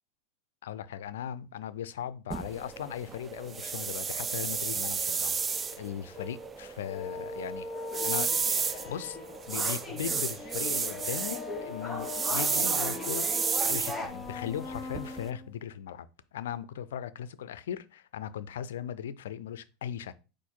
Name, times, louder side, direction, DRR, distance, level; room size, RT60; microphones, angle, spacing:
voice 1, 0.6-7.7 8.0-9.2 9.5-20.1, left 9 dB, 90° left, 0.4 m, -38 dB
sound 1, 2.3-15.3, right 5 dB, 20° right, 0.3 m, -33 dB
sound 2, 6.2-15.5, left 5 dB, 45° left, 0.8 m, -42 dB
sound 3, 7.7-14.1, left 1 dB, 10° left, 1.0 m, -40 dB
4.6 x 2.5 x 4.4 m
supercardioid pair, 120°, 0 cm